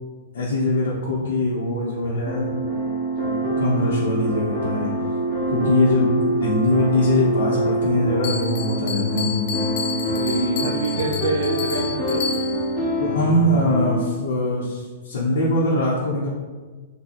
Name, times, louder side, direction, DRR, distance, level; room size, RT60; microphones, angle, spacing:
voice 1, 0.3-2.5 3.2-4.9 5.5-9.6 13.0-16.3, left 1 dB, 80° left, -7 dB, 0.9 m, -22 dB
sound 1, 2.3-14.0, right 1 dB, 5° left, 1.1 m, -25 dB
Bell, 8.2-12.8, left 5 dB, 55° left, 0.4 m, -31 dB
voice 2, 10.1-12.6, right 4 dB, 75° right, 3 dB, 0.3 m, -26 dB
4.1 x 2.3 x 3.0 m, 1.3 s
hypercardioid pair, 150°, 0 cm